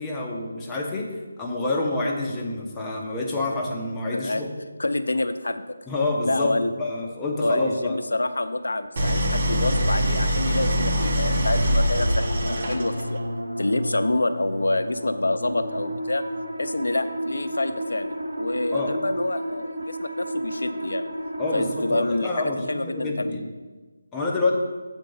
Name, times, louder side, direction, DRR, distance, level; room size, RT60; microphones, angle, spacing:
voice 1, 0.0-4.5 5.9-6.5 6.8-8.0 18.7-18.9 21.4-23.5 24.1-24.5, left 2 dB, 10° left, -3 dB, 0.8 m, -27 dB
voice 2, 4.1-4.4 4.8-5.7 6.2-6.7 7.4-13.2 13.6-16.2 16.6-21.1 21.5-23.4, left 2 dB, 80° left, 10 dB, 0.6 m, -27 dB
Idling, 9.0-13.2, equal, 45° right, 1.0 m, -23 dB
sound 1, 12.0-21.9, equal, 85° right, 1.1 m, -32 dB
7.7 x 4.4 x 5.5 m, 1.3 s
figure-of-eight pair, 165°, 0 cm